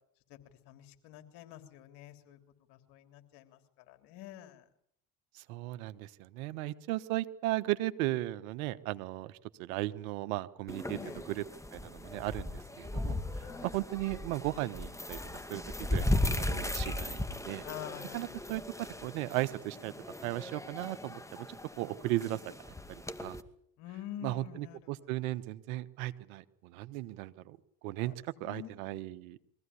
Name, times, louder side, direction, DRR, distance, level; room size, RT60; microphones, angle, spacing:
voice 1, 0.7-2.4 2.7-3.6 3.9-4.6 10.9-11.2 13.4-13.7 17.6-18.3 23.8-25.1 28.0-28.1 28.4-29.0, left 12 dB, 75° left, 7 dB, 3.5 m, -47 dB
voice 2, 5.3-11.0 11.3-11.4 11.7-17.6 18.1-19.9 20.2-21.5 21.8-22.6 22.9-23.4 24.2-27.6 27.8-29.4, right 17 dB, 80° right, 13 dB, 1.3 m, -36 dB
sound 1, 10.7-23.4, left 1 dB, 5° left, 2.1 m, -37 dB
23.0 x 15.5 x 9.8 m, 0.68 s
hypercardioid pair, 65°, 41 cm